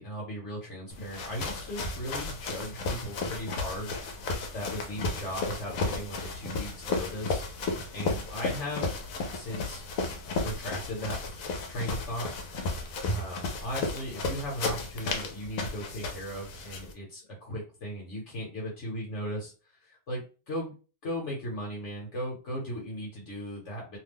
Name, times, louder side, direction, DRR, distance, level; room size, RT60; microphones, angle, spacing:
voice 1, 0.0-7.7 7.9-9.0 9.3-9.8 10.4-11.3 11.7-12.3 13.1-19.5 19.8-20.7 21.0-24.0, equal, 55° left, -2 dB, 1.2 m, -37 dB
sound 1, 0.9-16.9, left 3 dB, 75° left, 1.1 m, -34 dB
2.8 x 2.2 x 3.5 m, 0.34 s
omnidirectional pair, 1.5 m